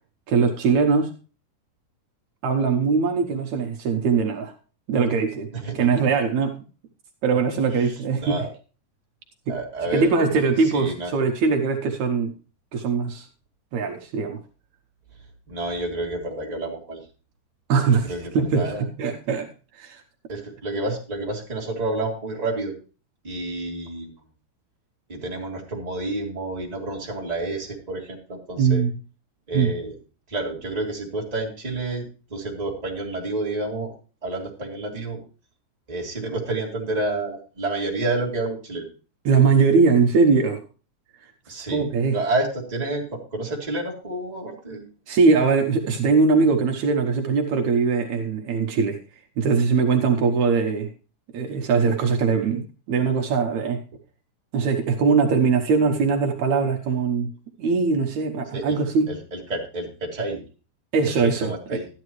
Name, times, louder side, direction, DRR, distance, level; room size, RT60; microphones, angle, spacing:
voice 1, 0.3-1.2 2.4-4.5 4.9-5.5 5.7-6.5 7.2-8.4 9.5-9.6 9.9-12.3 12.7-13.3 13.7-14.4 17.7-20.0 28.6-28.9 29.5-29.7 39.3-40.6 41.7-42.2 45.1-49.0 49.4-50.9 51.3-53.8 54.5-57.3 57.6-59.2 60.9-61.8, right 5 dB, 70° right, 4 dB, 2.3 m, -21 dB
voice 2, 5.5-5.9 7.7-7.9 8.2-8.5 9.5-11.1 15.5-17.0 18.0-18.8 20.3-22.7 23.2-24.1 25.1-28.8 29.5-30.0 30.3-33.9 34.2-35.2 35.9-38.9 41.5-44.9 58.5-58.8 59.1-60.4 61.2-61.9, right 2 dB, 15° right, -3 dB, 2.5 m, -29 dB
13.0 x 10.5 x 3.1 m, 0.35 s
omnidirectional pair, 3.5 m